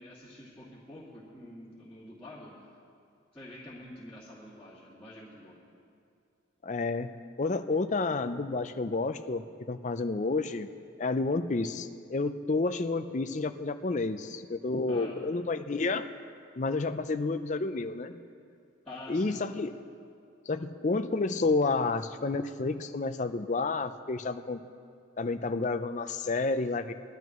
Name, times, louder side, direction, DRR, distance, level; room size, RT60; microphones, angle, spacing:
voice 1, 0.0-2.5 3.3-5.6 14.9-15.2 18.8-19.4, left 1 dB, 10° left, -12 dB, 2.4 m, -47 dB
voice 2, 6.6-7.1 7.4-10.7 11.0-16.1 16.6-18.2 19.1-19.7 20.5-24.6 25.2-26.9, left 3 dB, 35° left, 9 dB, 0.5 m, -30 dB
21.0 x 12.5 x 3.1 m, 2.4 s
head